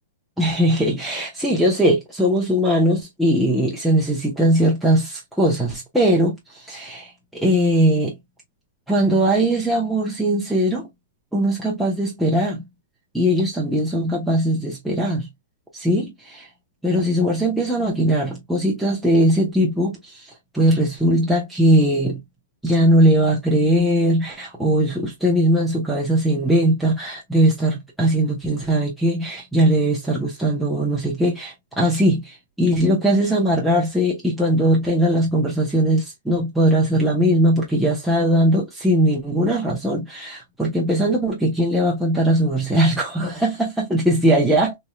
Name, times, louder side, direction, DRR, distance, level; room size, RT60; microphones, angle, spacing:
voice 1, 0.4-8.2 8.9-10.9 11.3-12.6 13.1-15.3 15.7-16.5 16.8-22.2 22.6-44.8, right 1 dB, ahead, 0.9 m, -20 dB
3.1 x 2.6 x 2.2 m
hypercardioid pair, 140°, 0 cm